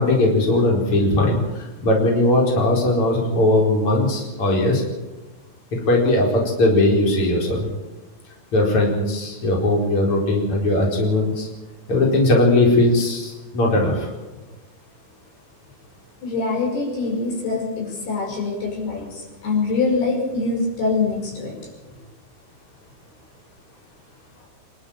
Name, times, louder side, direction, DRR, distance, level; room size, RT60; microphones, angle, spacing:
voice 1, 0.0-4.8 5.7-7.7 8.5-11.5 11.9-14.1, left 2 dB, 35° left, -1 dB, 5.2 m, -19 dB
voice 2, 16.2-21.5 21.9-22.0, left 3 dB, 85° left, 1 dB, 7.3 m, -24 dB
25.5 x 12.0 x 8.9 m, 1.1 s
omnidirectional pair, 4.5 m